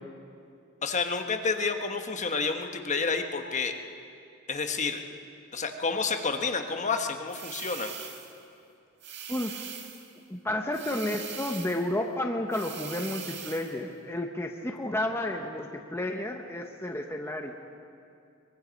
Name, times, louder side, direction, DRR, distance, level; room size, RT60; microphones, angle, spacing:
voice 1, 0.8-3.7 4.5-5.0 5.5-7.9, left 4 dB, 35° left, 5 dB, 1.1 m, -29 dB
sound 1, 7.3-8.4 9.0-10.1 10.7-11.9 12.5-13.8, right 7 dB, 55° right, 1.7 m, -41 dB
voice 2, 9.3-9.6 10.3-17.5, left 1 dB, 10° left, 2 dB, 0.9 m, -31 dB
23.0 x 21.5 x 5.2 m, 2.6 s
head